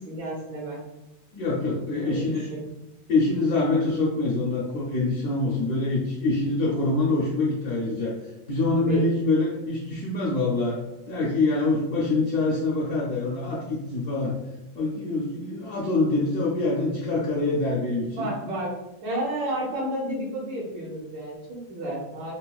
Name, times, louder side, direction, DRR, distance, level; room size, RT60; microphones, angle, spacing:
voice 1, 0.1-0.8 2.0-2.6 8.7-9.1 18.2-18.7 19.0-22.3, right 1 dB, 70° right, -3 dB, 1.5 m, -31 dB
voice 2, 1.3-2.5 3.1-8.1 8.5-10.8 11.1-14.3 14.7-18.3, left 2 dB, 70° left, -5 dB, 0.9 m, -25 dB
4.1 x 2.2 x 2.3 m, 0.93 s
omnidirectional pair, 2.2 m